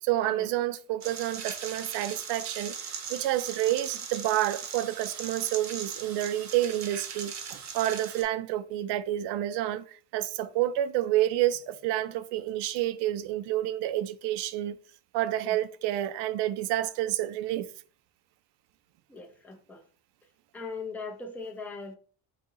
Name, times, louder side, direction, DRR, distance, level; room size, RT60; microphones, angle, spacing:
voice 1, 0.0-14.8 15.1-17.7, right 13 dB, 85° right, 0.5 m, -29 dB
sound 1, 1.0-8.2, right 6 dB, 45° right, 0.7 m, -39 dB
voice 2, 19.1-19.8 20.5-22.0, left 4 dB, 5° left, 0.3 m, -39 dB
4.0 x 2.8 x 3.6 m
cardioid pair, 180°, 40 cm